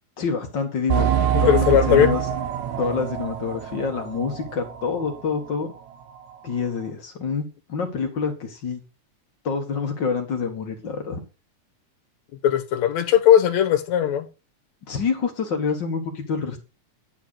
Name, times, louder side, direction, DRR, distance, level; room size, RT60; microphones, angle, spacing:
voice 1, 0.2-1.1 1.4-2.2 2.8-5.7 6.4-8.8 9.4-11.2 14.9-16.6, left 5 dB, 45° left, 1.7 m, -27 dB
sound 1, 0.9-5.2 5.5-5.6 6.2-6.3, right 10 dB, 75° right, 2.2 m, -25 dB
voice 2, 1.3-2.1 12.4-14.3, left 10 dB, 70° left, 2.4 m, -18 dB
10.0 x 4.6 x 6.2 m
omnidirectional pair, 3.4 m